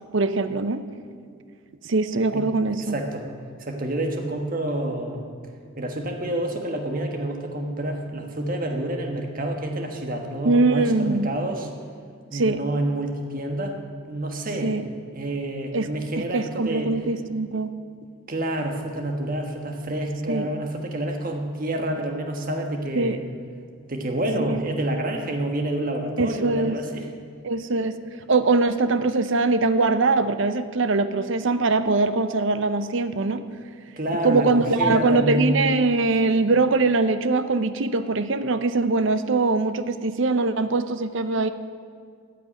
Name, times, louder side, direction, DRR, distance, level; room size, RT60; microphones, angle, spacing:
voice 1, 0.1-0.8 1.8-2.9 10.4-11.3 12.3-12.6 14.6-14.8 15.7-15.9 16.2-17.7 20.3-20.5 23.0-23.2 24.4-24.6 26.2-26.8 27.4-28.0 28.3-33.4 34.2-41.5, right 3 dB, 60° right, 11 dB, 0.6 m, -22 dB
voice 2, 2.8-3.3 3.6-5.3 5.8-11.7 12.3-13.8 14.0-14.7 15.1-16.9 18.3-23.2 23.9-27.1 34.0-35.6, right 1 dB, 40° right, 3 dB, 1.4 m, -28 dB
14.5 x 6.0 x 9.8 m, 2.1 s
head